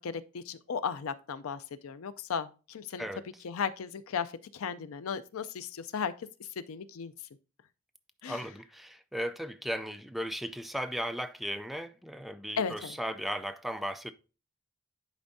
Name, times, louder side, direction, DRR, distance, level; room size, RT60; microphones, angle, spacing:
voice 1, 0.0-3.1 3.4-7.1 8.2-8.4 12.6-13.0, left 6 dB, 75° left, 0.4 m, -36 dB
voice 2, 8.3-14.1, equal, ahead, 0.3 m, -36 dB
10.5 x 4.3 x 2.6 m
head